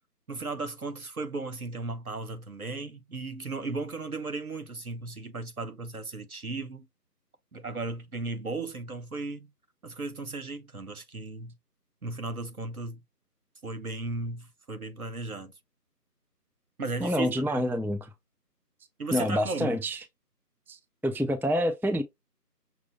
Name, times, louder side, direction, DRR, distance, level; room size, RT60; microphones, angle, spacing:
voice 1, 0.3-6.9 7.5-9.5 9.8-11.6 12.0-13.0 13.6-15.5 16.8-17.6 19.0-19.8, right 3 dB, 60° right, 0.8 m, -36 dB
voice 2, 17.0-18.1 19.1-20.0 20.7-20.8 21.0-22.0, equal, 5° right, 0.3 m, -27 dB
6.0 x 2.1 x 3.9 m
figure-of-eight pair, 175°, 49 cm